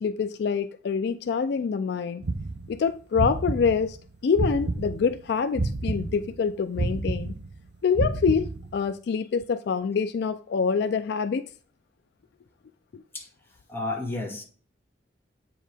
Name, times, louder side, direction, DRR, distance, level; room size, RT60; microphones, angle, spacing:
voice 1, 0.0-2.2 2.7-4.0 4.2-7.4 7.8-11.5 12.9-13.0, left 6 dB, 60° left, 0.3 m, -26 dB
sound 1, 2.2-5.2 5.5-8.9, right 2 dB, 65° right, 0.6 m, -30 dB
voice 2, 13.7-14.4, left 2 dB, 10° left, 2.0 m, -31 dB
8.1 x 4.6 x 3.4 m
head